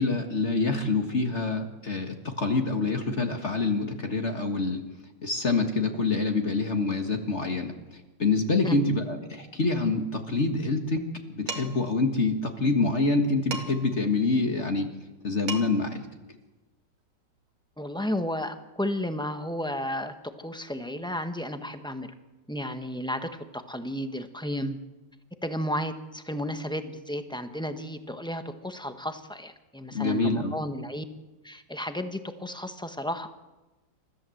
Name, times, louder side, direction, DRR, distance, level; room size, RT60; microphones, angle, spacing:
voice 1, 0.0-4.8 5.2-7.7 8.2-14.9 15.2-16.1 29.9-30.5, left 3 dB, 40° left, 4 dB, 1.8 m, -26 dB
Dishes pots and pans, 11.5-11.9 13.5-14.0 15.1-15.2 15.5-15.9, right 4 dB, 80° right, 2.8 m, -36 dB
voice 2, 17.8-22.1 22.5-24.8 25.4-31.0 31.4-33.3, left 1 dB, 5° left, 8 dB, 0.9 m, -33 dB
28.5 x 14.0 x 7.8 m, 1.1 s
omnidirectional pair, 2.0 m